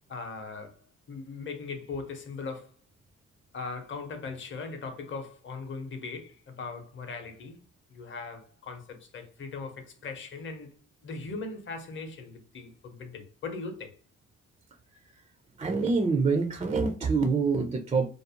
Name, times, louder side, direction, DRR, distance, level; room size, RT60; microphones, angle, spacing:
voice 1, 0.1-2.7 3.5-7.6 7.9-10.7 11.0-14.0, left 4 dB, 40° left, 0.7 m, -39 dB
voice 2, 15.6-18.1, right 4 dB, 20° right, 0.3 m, -26 dB
2.5 x 2.0 x 2.8 m
cardioid pair, 90°, 30 cm